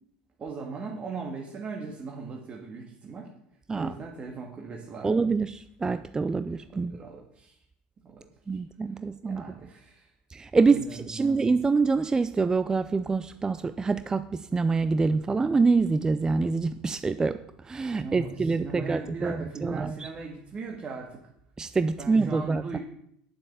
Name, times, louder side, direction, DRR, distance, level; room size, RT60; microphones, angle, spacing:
voice 1, 0.4-3.3 3.7-5.1 6.7-7.6 8.0-8.3 8.5-8.6 9.2-10.1 10.6-11.4 17.8-21.2 22.0-22.8, right 4 dB, 35° right, 0 dB, 2.0 m, -39 dB
voice 2, 5.0-7.0 8.5-9.4 10.3-19.9 21.6-22.6, right 4 dB, 15° right, 12 dB, 0.4 m, -26 dB
9.7 x 7.5 x 6.8 m, 0.74 s
supercardioid pair, 100°, 4 cm